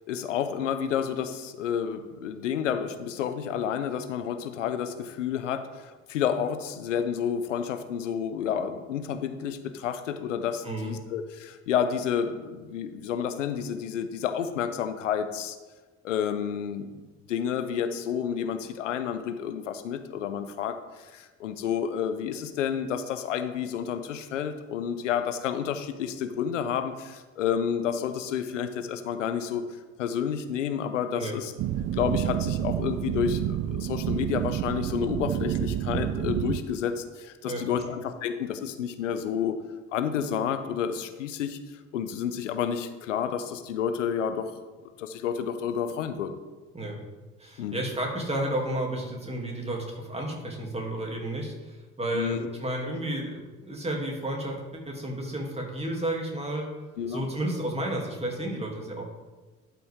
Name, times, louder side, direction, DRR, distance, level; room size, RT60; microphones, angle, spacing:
voice 1, 0.1-15.6 16.0-16.9 17.3-29.6 30.0-31.5 31.9-39.6 39.9-41.6 41.9-44.5 45.0-46.3 47.6-47.8 52.1-52.5 57.0-57.2, left 8 dB, 90° left, 9 dB, 0.7 m, -30 dB
voice 2, 10.6-11.0 31.2-31.4 37.4-37.9 46.7-47.0 47.4-56.7 57.1-59.1, right 1 dB, 15° right, -1 dB, 2.9 m, -32 dB
sound 1, 31.6-36.6, right 11 dB, 45° right, 0.5 m, -29 dB
12.0 x 5.8 x 3.7 m, 1.3 s
hypercardioid pair, 60°, 36 cm